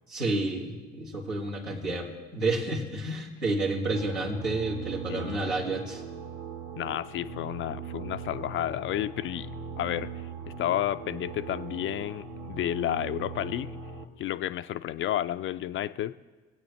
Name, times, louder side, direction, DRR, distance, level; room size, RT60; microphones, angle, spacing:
voice 1, 0.1-6.0, right 2 dB, 85° right, -4 dB, 1.8 m, -30 dB
sound 1, 3.9-14.0, right 5 dB, 70° right, 1.1 m, -40 dB
voice 2, 5.1-5.5 6.8-9.5 9.8-10.1 10.6-13.7 14.2-16.1, left 12 dB, 40° left, 12 dB, 0.4 m, -31 dB
21.5 x 8.3 x 3.2 m, 1.3 s
figure-of-eight pair, 50°, 32 cm